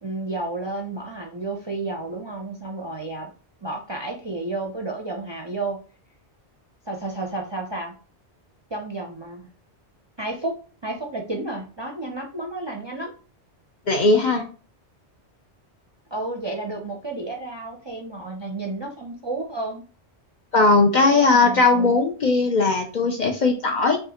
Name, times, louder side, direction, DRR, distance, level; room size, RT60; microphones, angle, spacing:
voice 1, 0.0-3.3 3.6-5.8 6.9-7.9 8.7-9.5 10.2-10.6 10.8-13.1 16.1-19.8 21.0-22.0, right 2 dB, 35° right, 1 dB, 0.4 m, -31 dB
voice 2, 13.9-14.5 20.5-24.0, left 3 dB, 55° left, 3 dB, 0.6 m, -18 dB
5.3 x 2.4 x 2.8 m, 0.38 s
omnidirectional pair, 1.1 m